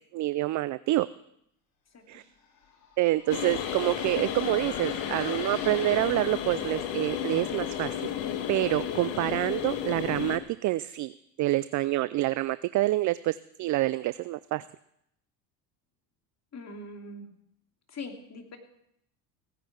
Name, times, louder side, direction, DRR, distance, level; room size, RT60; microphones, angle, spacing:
voice 1, 0.1-1.1 2.1-2.2 3.0-8.0 8.5-11.1 11.4-14.6, right 17 dB, 40° right, 16 dB, 0.5 m, -27 dB
sound 1, 2.2-6.7, left 5 dB, 80° left, 3.8 m, -47 dB
sound 2, 3.3-10.4, left 10 dB, 65° left, 1.8 m, -33 dB
voice 2, 16.5-17.3 17.9-18.6, left 2 dB, 35° left, 3 dB, 2.9 m, -42 dB
16.5 x 10.0 x 6.0 m, 0.74 s
hypercardioid pair, 80°, 47 cm